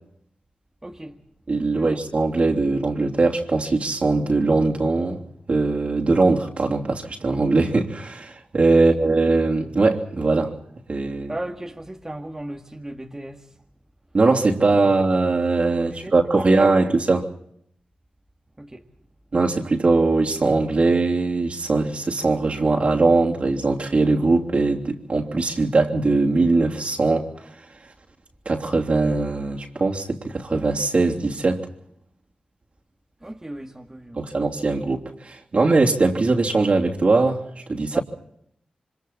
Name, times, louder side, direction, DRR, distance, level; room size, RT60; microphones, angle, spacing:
voice 1, 0.8-1.2 1.7-2.0 8.7-8.9 11.3-13.5 14.5-14.6 16.0-16.9 18.6-18.9 33.2-34.2 37.9-38.0, right 1 dB, 20° right, 1.9 m, -36 dB
voice 2, 1.5-5.2 5.5-10.5 10.9-11.3 14.1-17.3 19.3-27.3 28.4-31.6 34.1-37.4 37.7-38.0, right 3 dB, 50° right, 3.1 m, -20 dB
27.5 x 25.0 x 4.2 m
cardioid pair, 70°, 3 cm